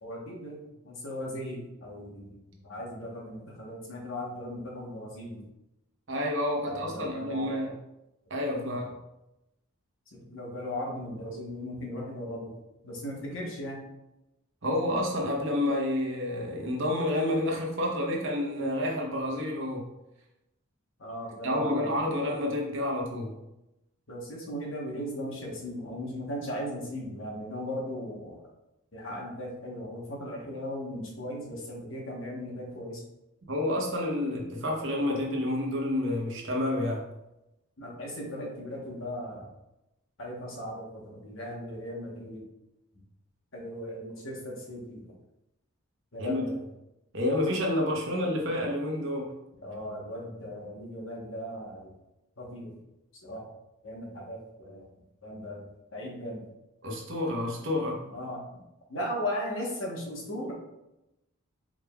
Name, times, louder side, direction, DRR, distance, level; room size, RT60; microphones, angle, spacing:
voice 1, 0.0-5.4 6.6-7.5 8.5-8.8 10.1-12.5 12.8-13.8 21.0-22.0 24.1-28.5 28.9-33.0 37.8-39.5 40.2-42.4 43.5-45.1 46.1-46.6 49.6-51.9 52.4-52.7 53.2-53.4 53.8-54.9 55.2-55.7 55.9-56.4 58.0-58.6 58.9-60.5, equal, 60° left, -2 dB, 1.1 m, -37 dB
voice 2, 6.1-7.7 8.3-8.9 14.6-19.9 21.4-23.4 33.5-37.1 46.2-46.5 47.1-49.3 56.8-58.0, left 1 dB, 55° right, -1 dB, 0.9 m, -29 dB
4.7 x 3.5 x 2.3 m, 0.92 s
head